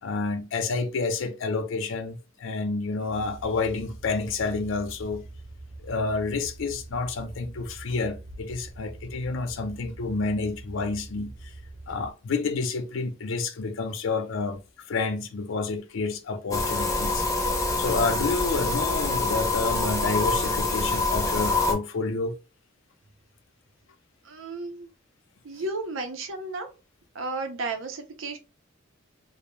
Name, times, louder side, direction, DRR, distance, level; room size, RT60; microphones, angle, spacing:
voice 1, 0.0-5.2 5.8-11.3 11.9-14.6 14.9-17.3 17.8-22.4, left 3 dB, 65° left, 0.4 m, -29 dB
sound 1, 3.1-12.1, right 2 dB, 20° right, 0.8 m, -44 dB
sound 2, 16.5-21.7, left 2 dB, 15° left, 0.6 m, -26 dB
voice 2, 24.2-24.9 25.4-26.7 27.1-28.4, right 2 dB, 70° right, 0.5 m, -33 dB
2.2 x 2.1 x 2.9 m
head